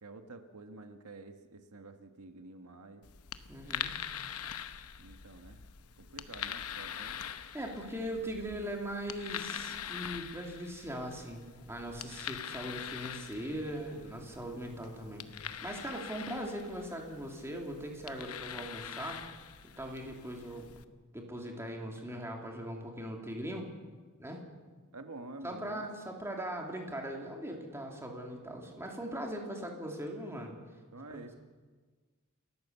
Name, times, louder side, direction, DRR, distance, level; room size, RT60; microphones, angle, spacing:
voice 1, 0.0-3.1 5.0-5.6 6.0-7.2 24.9-25.9 30.9-31.3, right 2 dB, 85° right, 7 dB, 1.4 m, -49 dB
sound 1, 3.0-20.8, left 9 dB, 70° left, 1.0 m, -44 dB
voice 2, 3.5-4.0 7.5-15.3 15.6-19.2 19.8-20.7 21.1-23.7 24.2-24.4 25.4-30.5, right 1 dB, 10° right, 1 dB, 3.0 m, -40 dB
29.5 x 14.0 x 7.0 m, 1.4 s
head